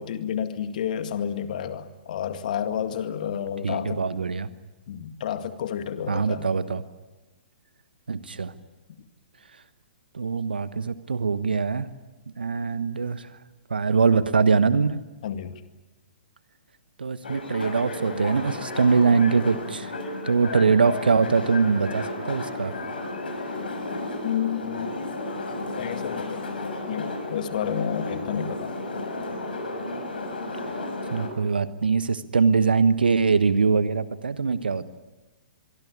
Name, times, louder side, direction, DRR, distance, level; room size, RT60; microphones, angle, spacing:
voice 1, 0.0-4.0 4.9-6.5 15.2-15.6 24.2-25.0 25.8-26.5 26.9-28.7, left 9 dB, 55° left, 9 dB, 2.0 m, -30 dB
voice 2, 3.6-4.5 6.1-6.8 8.1-8.5 10.1-11.9 12.4-13.3 13.7-15.0 17.0-19.9 20.2-22.7 31.1-34.9, right 5 dB, 75° right, 13 dB, 1.2 m, -22 dB
sound 1, 17.2-31.3, left 2 dB, 70° left, 6.6 m, -33 dB
25.0 x 23.0 x 9.9 m, 1.1 s
figure-of-eight pair, 115°, 5 cm